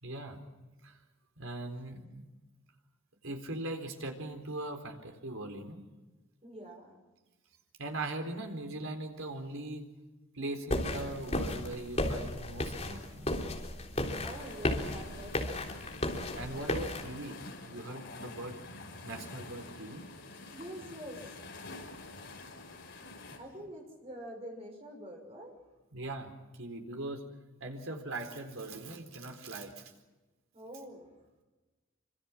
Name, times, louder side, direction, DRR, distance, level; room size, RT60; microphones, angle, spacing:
voice 1, 0.0-0.4 0.8-1.0 1.4-2.3 3.2-5.8 7.8-9.9 10.3-13.3 16.3-17.4 17.7-18.6 19.0-20.0 25.9-27.3 27.6-29.9, right 2 dB, 80° right, 5 dB, 4.2 m, -40 dB
voice 2, 6.4-7.0 14.2-15.6 20.5-21.3 23.4-25.5 30.5-31.1, equal, 30° right, 3 dB, 6.5 m, -45 dB
sound 1, 10.7-17.1, left 1 dB, 30° left, 3.6 m, -34 dB
sound 2, 14.0-23.4, left 2 dB, 60° left, 5.7 m, -47 dB
27.5 x 26.0 x 6.1 m, 1.2 s
head